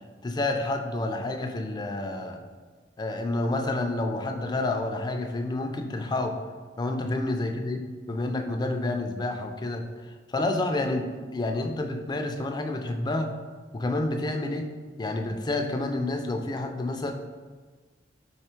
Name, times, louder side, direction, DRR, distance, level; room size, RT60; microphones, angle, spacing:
voice 1, 0.2-2.4 3.0-6.4 6.8-9.8 10.3-11.1 11.3-13.3 13.7-14.7 15.0-17.1, left 2 dB, 25° left, 4 dB, 0.4 m, -29 dB
3.3 x 3.1 x 4.4 m, 1.5 s
head